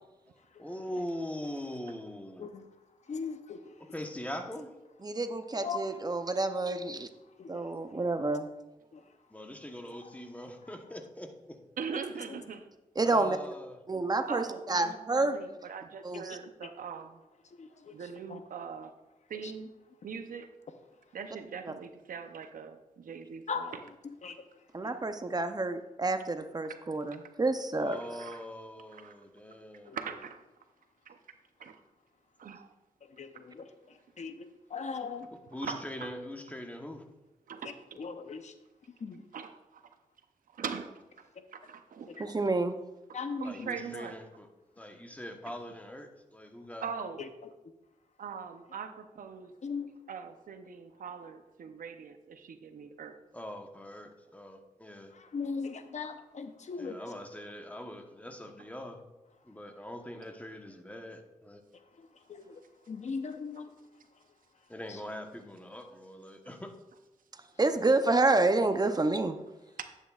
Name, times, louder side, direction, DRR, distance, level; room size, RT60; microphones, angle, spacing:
voice 1, 0.3-2.5 3.9-4.7 9.3-11.6 12.2-12.3 13.0-13.8 27.8-30.0 35.5-37.0 43.4-44.5 44.8-46.9 53.3-55.1 56.8-59.0 59.4-61.6 64.7-66.7, left 1 dB, 10° left, 4 dB, 1.1 m, -42 dB
voice 2, 3.1-3.6 5.6-6.2 7.4-7.9 8.9-9.0 10.0-10.2 12.3-12.4 16.1-16.4 17.5-18.0 18.3-18.4 19.4-19.5 23.5-23.7 24.2-24.4 29.9-30.0 33.1-35.3 37.6-38.5 39.0-39.2 41.4-41.5 42.2-42.3 43.1-43.7 47.2-47.3 49.6-50.0 55.1-57.0 62.0-62.6 62.9-63.7 64.9-65.0, left 5 dB, 55° left, 8 dB, 0.7 m, -39 dB
voice 3, 5.0-7.1 7.5-8.5 13.0-13.4 13.9-15.4 16.0-16.2 24.7-28.0 42.2-42.8 67.6-69.4, right 2 dB, 30° right, 8 dB, 0.6 m, -28 dB
voice 4, 11.8-12.7 14.3-17.2 17.9-18.9 19.3-19.7 20.0-20.5 21.1-23.7 26.6-26.8 28.1-28.5 28.9-29.2 29.9-30.4 31.1-31.2 31.6-31.8 32.4-32.7 35.6-36.1 37.5-38.0 39.3-39.8 40.5-42.4 43.4-44.2 46.8-47.2 48.2-49.5 50.1-53.1 69.8-69.9, right 6 dB, 85° right, 8 dB, 0.7 m, -41 dB
11.0 x 8.3 x 2.4 m, 1.0 s
cardioid pair, 75°, 14 cm